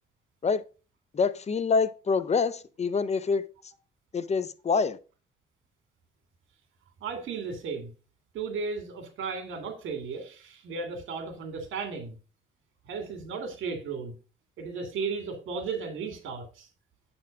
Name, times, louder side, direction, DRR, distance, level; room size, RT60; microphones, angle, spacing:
voice 1, 1.1-3.5 4.1-5.0, left 5 dB, 35° left, 0.6 m, -26 dB
voice 2, 7.0-7.9 8.3-12.2 12.8-14.1 14.6-16.7, right 5 dB, 80° right, 2.1 m, -35 dB
7.5 x 4.4 x 5.0 m
cardioid pair, 90°, 20 cm